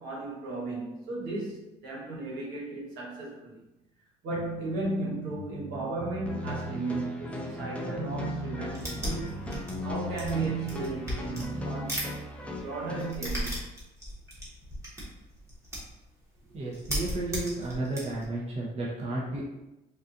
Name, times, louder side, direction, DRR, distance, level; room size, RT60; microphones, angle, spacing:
voice 1, 0.0-3.6 4.2-9.5 9.8-12.0 12.6-13.6, right 3 dB, 85° right, -5 dB, 1.3 m, -35 dB
sound 1, 4.3-11.7, right 3 dB, 65° right, 1.0 m, -42 dB
sound 2, 6.3-13.1, left 2 dB, 5° left, 0.5 m, -38 dB
sound 3, 8.7-12.1 12.4-16.0 16.4-16.5 16.7-18.3, equal, 15° right, 1.3 m, -36 dB
voice 2, 16.5-19.4, right 2 dB, 40° right, -5 dB, 0.9 m, -33 dB
4.0 x 2.5 x 2.7 m, 0.96 s
cardioid pair, 110°, 17 cm